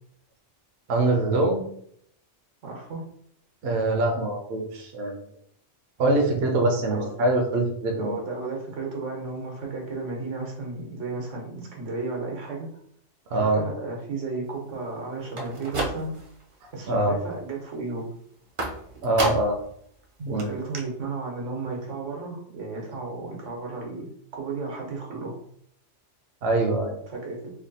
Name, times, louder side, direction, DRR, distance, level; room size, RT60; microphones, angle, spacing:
voice 1, 0.9-1.7 3.6-5.2 6.0-8.2 13.3-13.6 16.9-17.2 19.0-19.6 20.2-20.5 26.4-27.0, right 2 dB, 65° right, 1 dB, 0.9 m, -23 dB
voice 2, 2.6-3.0 6.9-7.1 8.0-12.7 13.4-16.1 16.7-18.1 19.2-19.4 20.3-24.1 24.3-25.3 27.1-27.5, right 3 dB, 85° right, -1 dB, 1.4 m, -33 dB
sound 1, 15.3-16.4 16.8-17.3 18.6-19.7 20.0-20.1 20.4-20.5 20.7-20.8, right 1 dB, 45° right, 0.4 m, -31 dB
3.3 x 2.2 x 3.9 m, 0.68 s
omnidirectional pair, 1.2 m